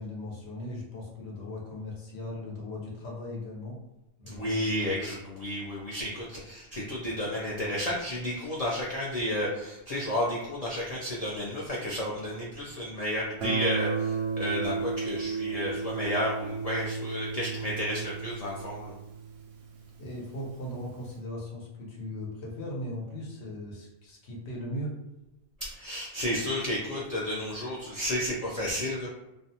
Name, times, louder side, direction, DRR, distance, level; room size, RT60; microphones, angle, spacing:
voice 1, 0.0-3.8 4.2-4.7 5.0-5.1 7.0-7.1 20.0-25.0, left 1 dB, 75° left, -2 dB, 1.0 m, -38 dB
voice 2, 4.3-18.9 25.6-29.1, left 1 dB, 50° left, -5 dB, 0.5 m, -32 dB
Guitar, 13.4-20.1, right 4 dB, 90° right, 0.9 m, -33 dB
2.5 x 2.1 x 2.7 m, 0.95 s
omnidirectional pair, 1.1 m